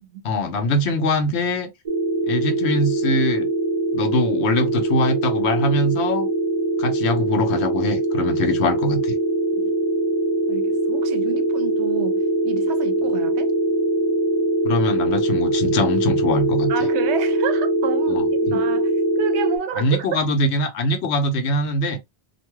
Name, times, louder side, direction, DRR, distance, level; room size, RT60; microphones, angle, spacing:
voice 1, 0.2-1.7 2.3-3.5 3.9-6.3 6.8-9.1 14.6-16.7 18.1-18.6 19.8-22.0, left 1 dB, 80° left, 1.0 m, -22 dB
sound 1, 1.9-19.6, right 2 dB, 40° right, 0.5 m, -22 dB
voice 2, 10.5-13.5 16.7-20.2, right 9 dB, 90° right, 0.9 m, -30 dB
2.6 x 2.2 x 3.0 m
omnidirectional pair, 1.1 m